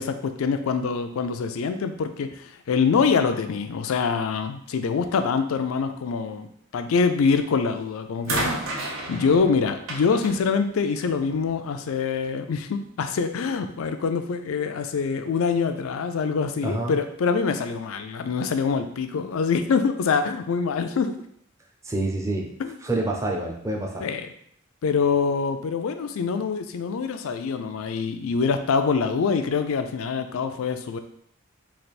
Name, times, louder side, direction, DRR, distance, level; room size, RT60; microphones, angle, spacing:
voice 1, 0.0-6.5 6.7-8.6 9.1-21.1 22.6-23.0 24.0-24.3 24.8-31.0, left 5 dB, 80° left, 8 dB, 0.4 m, -25 dB
sound 1, 7.3-7.7 8.2-11.5 12.5-12.6, right 2 dB, 80° right, 0.7 m, -32 dB
voice 2, 16.6-16.9 21.8-22.5 22.8-24.1, right 2 dB, 15° right, 0 dB, 0.5 m, -27 dB
3.3 x 2.5 x 4.1 m, 0.67 s
head